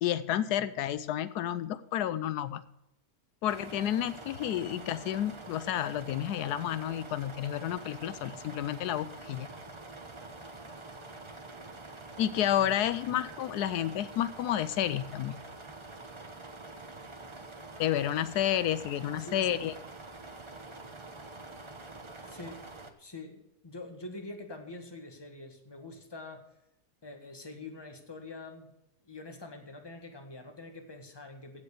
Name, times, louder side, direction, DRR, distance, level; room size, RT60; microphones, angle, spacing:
voice 1, 0.0-2.6 3.4-9.5 12.2-15.4 17.8-19.7, left 11 dB, 85° left, 15 dB, 1.2 m, -30 dB
sound 1, 3.5-22.9, right 2 dB, 25° right, 0.7 m, -46 dB
voice 2, 19.2-19.6 22.2-22.6 23.0-26.4 27.0-28.7 29.0-31.6, left 2 dB, 15° left, 4 dB, 1.5 m, -45 dB
15.5 x 5.3 x 6.5 m, 0.85 s
omnidirectional pair, 1.7 m